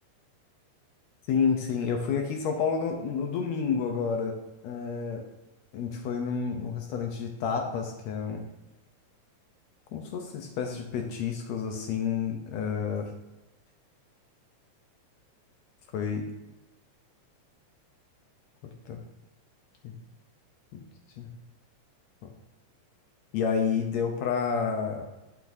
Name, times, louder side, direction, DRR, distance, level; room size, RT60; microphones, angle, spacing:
voice 1, 1.3-4.3 4.6-5.2 5.7-8.4 9.9-13.1 15.9-16.3 18.9-19.0 19.8-19.9 20.7-20.8 21.2-21.3 22.2-22.3 23.3-25.0, left 6 dB, 75° left, 3 dB, 1.7 m, -29 dB
11.0 x 6.0 x 2.6 m, 1.0 s
omnidirectional pair, 3.5 m